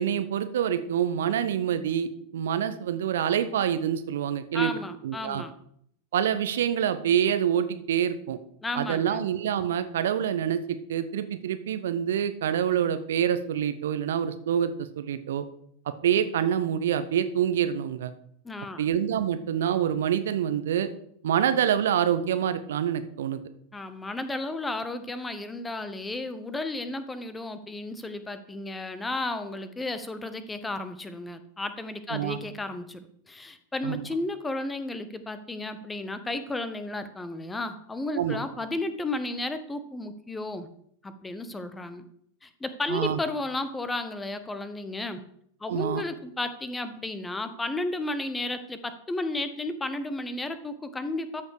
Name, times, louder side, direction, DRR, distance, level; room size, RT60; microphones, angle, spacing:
voice 1, 0.0-4.7 5.0-5.4 6.1-8.4 8.8-15.4 15.9-18.1 18.8-20.9 21.2-23.4 32.1-32.4 33.8-34.0 38.2-38.4 42.9-43.2 45.7-46.0, right 9 dB, 60° right, 11 dB, 0.7 m, -26 dB
voice 2, 4.5-5.5 8.6-9.2 18.4-18.8 23.7-40.7 41.0-42.0 42.4-45.2 45.6-51.4, left 2 dB, 10° left, 11 dB, 0.9 m, -33 dB
13.0 x 6.4 x 4.8 m, 0.68 s
figure-of-eight pair, 90°, 0 cm